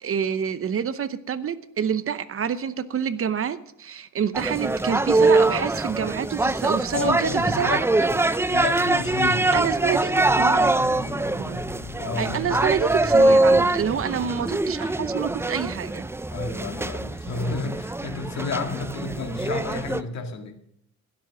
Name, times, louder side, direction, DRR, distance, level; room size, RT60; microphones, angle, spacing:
voice 1, 0.0-7.8 9.5-10.1 10.4-10.9 11.4-11.6 12.2-16.1, right 8 dB, 45° right, 14 dB, 0.8 m, -27 dB
sound 1, 4.3-20.0, right 2 dB, 10° right, 0.5 m, -23 dB
voice 2, 6.9-7.8 8.1-9.7 12.0-12.6 16.3-20.6, left 5 dB, 65° left, 5 dB, 2.1 m, -31 dB
sound 2, 8.3-8.5 8.8-15.0, left 7 dB, 85° left, 1.4 m, -42 dB
16.5 x 7.8 x 6.1 m, 0.76 s
cardioid pair, 90°, 30 cm